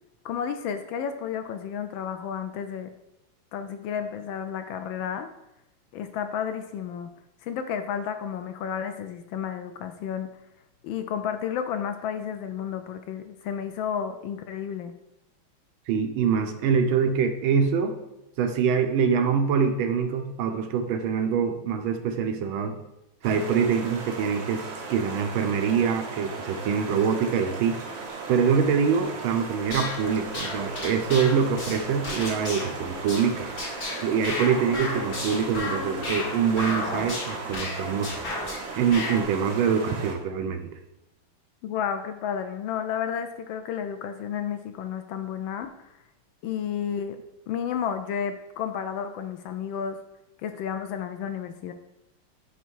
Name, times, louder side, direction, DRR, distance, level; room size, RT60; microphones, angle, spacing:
voice 1, 0.2-2.9 3.5-5.3 5.9-7.1 7.4-10.3 10.8-14.9 41.6-45.7 46.4-50.0 50.4-51.7, left 8 dB, 75° left, 8 dB, 1.2 m, -32 dB
voice 2, 15.9-18.0 18.4-22.8 23.2-27.8 28.3-33.5 34.0-38.1 38.8-40.7, right 6 dB, 75° right, 6 dB, 1.4 m, -24 dB
sound 1, 23.2-40.1, right 4 dB, 50° right, 1.2 m, -37 dB
sound 2, 29.6-38.6 38.9-39.2, left 2 dB, 50° left, 2.3 m, -34 dB
9.0 x 3.0 x 4.6 m, 0.89 s
omnidirectional pair, 2.3 m